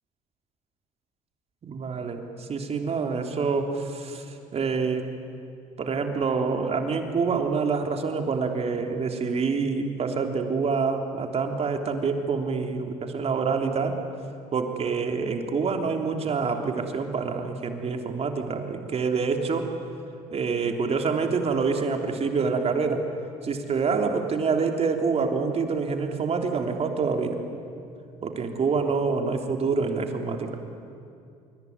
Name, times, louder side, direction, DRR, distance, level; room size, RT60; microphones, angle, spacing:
voice 1, 1.6-5.1 5.8-14.0 14.5-19.7 20.3-23.0 23.4-27.4 28.2-30.6, right 5 dB, 45° right, 4 dB, 3.3 m, -26 dB
25.5 x 23.0 x 9.6 m, 2.5 s
supercardioid pair, 75°, 15 cm